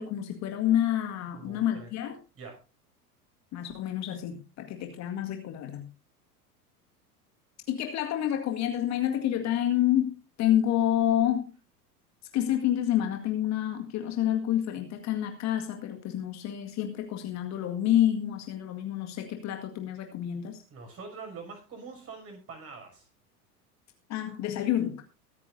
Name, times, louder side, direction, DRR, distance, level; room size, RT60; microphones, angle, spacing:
voice 1, 0.0-2.2 3.5-5.9 7.7-11.5 12.3-20.6 24.1-25.0, left 11 dB, 35° left, 5 dB, 2.0 m, -28 dB
voice 2, 1.3-1.9 2.3-2.6 20.7-23.1, right 4 dB, 30° right, 3 dB, 6.8 m, -44 dB
23.0 x 9.7 x 2.7 m, 0.31 s
figure-of-eight pair, 85°, 47 cm